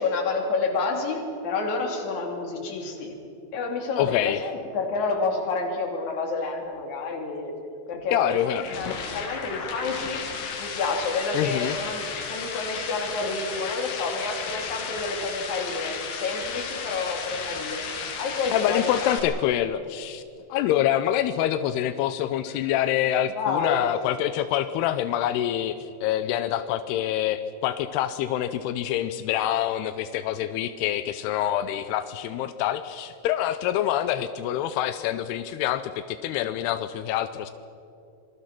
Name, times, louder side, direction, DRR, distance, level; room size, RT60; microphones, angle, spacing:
voice 1, 0.0-3.2 3.5-7.6 7.9-8.4 8.8-10.2 10.6-19.2 23.4-23.8, left 4 dB, 45° left, 2 dB, 3.6 m, -29 dB
voice 2, 4.0-4.5 8.1-8.9 11.3-11.8 18.5-20.2 20.5-37.5, left 11 dB, 85° left, 11 dB, 2.3 m, -26 dB
sound 1, 8.2-19.2, left 5 dB, 70° left, 4.4 m, -34 dB
26.0 x 21.5 x 6.0 m, 2.7 s
omnidirectional pair, 5.4 m